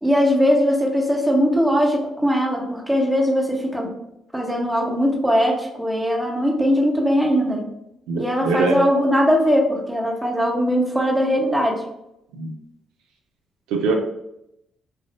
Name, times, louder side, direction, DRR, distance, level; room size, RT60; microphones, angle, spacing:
voice 1, 0.0-3.9 4.3-7.6 8.2-11.8, equal, 10° right, 0 dB, 0.9 m, -20 dB
voice 2, 8.1-8.8 12.3-12.5 13.7-13.9, right 4 dB, 80° right, 2 dB, 0.4 m, -22 dB
3.4 x 2.4 x 2.4 m, 0.82 s
hypercardioid pair, 55°, 0 cm